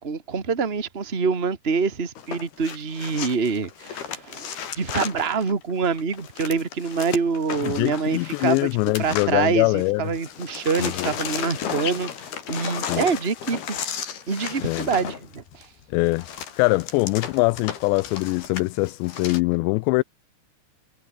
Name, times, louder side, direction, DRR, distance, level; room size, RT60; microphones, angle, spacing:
voice 1, 0.0-8.7 9.0-12.1 12.5-13.8 14.3-15.7, right 5 dB, 70° right, 0.5 m, -26 dB
sound 1, 2.2-9.9 10.1-19.4, left 8 dB, 60° left, 4.9 m, -34 dB
voice 2, 7.6-10.0 10.8-11.1 12.9-13.0 14.6-14.9 15.9-16.3 16.6-20.0, left 25 dB, 85° left, 2.7 m, -23 dB
omnidirectional pair, 5.1 m